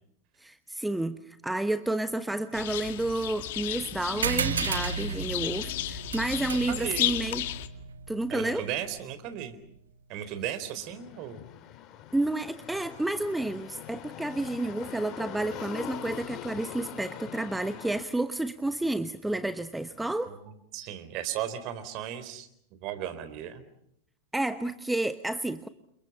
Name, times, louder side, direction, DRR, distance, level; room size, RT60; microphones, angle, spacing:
voice 1, 0.4-7.4 8.1-8.7 12.1-20.3 24.3-25.7, right 2 dB, 5° right, 12 dB, 1.1 m, -30 dB
sound 1, 2.5-7.7, left 14 dB, 55° left, 1.8 m, -34 dB
sound 2, 4.2-9.1, right 6 dB, 70° right, 1.9 m, -34 dB
voice 2, 6.7-7.1 8.3-9.6 10.1-11.4 20.3-22.5 22.8-23.6, right 10 dB, 40° right, 11 dB, 4.1 m, -36 dB
sound 3, 10.8-18.0, left 11 dB, 35° left, 2.9 m, -43 dB
30.0 x 28.0 x 5.5 m, 0.73 s
figure-of-eight pair, 90°, 0 cm